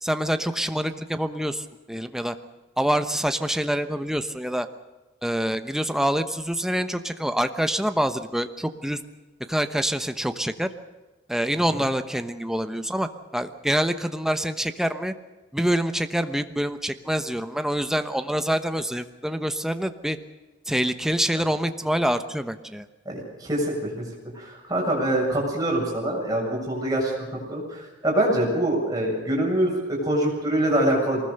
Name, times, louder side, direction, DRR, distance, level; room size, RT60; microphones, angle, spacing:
voice 1, 0.0-2.3 2.8-4.7 5.2-9.0 9.5-10.7 11.3-15.1 15.5-20.2 20.7-22.9, equal, 5° right, 9 dB, 1.0 m, -26 dB
voice 2, 23.1-23.7 24.3-27.1 27.5-31.2, right 1 dB, 20° right, -2 dB, 7.5 m, -24 dB
23.5 x 20.0 x 6.7 m, 1.2 s
head